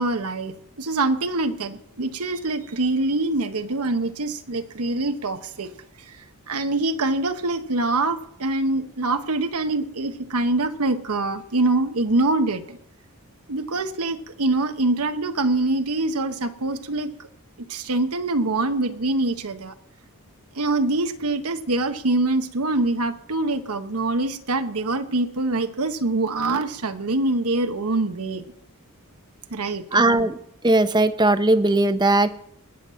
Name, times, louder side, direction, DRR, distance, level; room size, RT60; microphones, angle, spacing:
voice 1, 0.0-5.7 6.5-12.8 13.5-17.3 17.7-19.7 20.5-28.4 29.5-30.0, right 2 dB, 80° right, 8 dB, 1.1 m, -24 dB
voice 2, 29.9-30.4 30.6-32.3, right 2 dB, 20° right, 11 dB, 0.8 m, -18 dB
20.0 x 7.3 x 7.5 m, 0.71 s
head